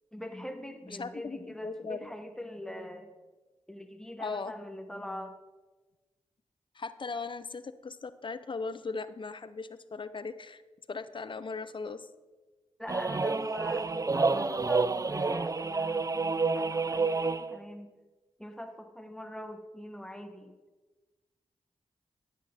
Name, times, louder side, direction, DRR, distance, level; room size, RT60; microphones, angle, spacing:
voice 1, 0.1-3.1 3.7-5.3 12.8-17.9 18.4-20.5, left 1 dB, 5° left, 6 dB, 1.2 m, -43 dB
voice 2, 0.9-2.1 4.2-4.5 6.7-10.6 10.9-12.1, left 4 dB, 45° left, 13 dB, 0.6 m, -38 dB
sound 1, 12.9-17.6, right 4 dB, 30° right, 0.4 m, -29 dB
9.7 x 8.0 x 3.5 m, 1.2 s
cardioid pair, 40°, 12 cm